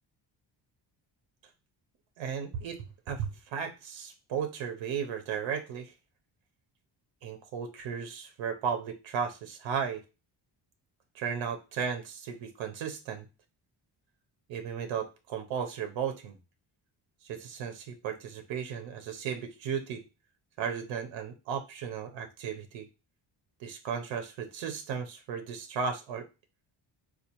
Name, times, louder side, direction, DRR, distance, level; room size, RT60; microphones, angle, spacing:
voice 1, 2.2-2.8 3.1-5.9 7.2-10.0 11.1-13.2 14.5-16.4 17.2-20.0 20.6-22.9 23.6-26.3, right 7 dB, 85° right, 6 dB, 0.6 m, -35 dB
4.4 x 2.3 x 2.8 m, 0.29 s
wide cardioid pair, 180°, 44 cm